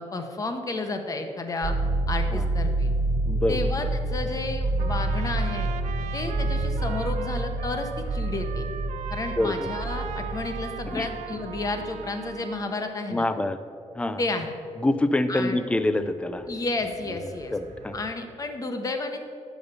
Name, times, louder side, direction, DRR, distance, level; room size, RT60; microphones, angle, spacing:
voice 1, 0.0-1.8 2.1-2.9 3.5-5.7 6.1-8.7 9.1-13.3 14.2-14.5 15.3-15.6 16.5-17.5 17.9-19.2, left 2 dB, 30° left, 6 dB, 0.8 m, -31 dB
sound 1, 1.6-12.3 16.4-16.5 16.7-18.0, right 2 dB, 70° right, 1.3 m, -28 dB
voice 2, 3.3-3.6 9.4-9.7 10.9-11.1 13.1-13.6 14.0-14.2 14.8-16.5 17.5-17.9, left 1 dB, 10° left, 11 dB, 0.4 m, -25 dB
Trumpet, 4.8-12.9, right 8 dB, 90° right, 0.5 m, -39 dB
7.1 x 5.4 x 6.8 m, 2.4 s
cardioid pair, 140°, 12 cm